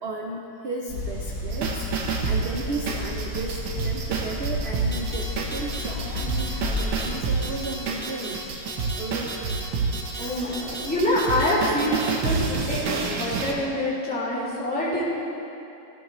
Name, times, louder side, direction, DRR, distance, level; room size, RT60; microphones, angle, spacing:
voice 1, 0.0-1.9 2.3-8.4 9.0-9.3 10.1-10.5, right 2 dB, 70° right, 0 dB, 0.5 m, -34 dB
sound 1, 0.9-7.6, left 2 dB, 60° left, 2.2 m, -32 dB
sound 2, 1.5-13.5, right 4 dB, 90° right, 1.9 m, -29 dB
sound 3, 4.9-5.2 5.5-5.8 6.2-6.5 6.8-7.1 7.4-7.7 8.0-8.3 8.7-9.0 9.3-9.6 9.9-10.2 10.5-10.9 11.2-11.5 11.8-12.1, right 3 dB, 35° right, 0.9 m, -36 dB
voice 2, 10.2-15.1, left 1 dB, 5° left, -9 dB, 2.6 m, -26 dB
15.5 x 12.5 x 3.1 m, 2.9 s
omnidirectional pair, 2.0 m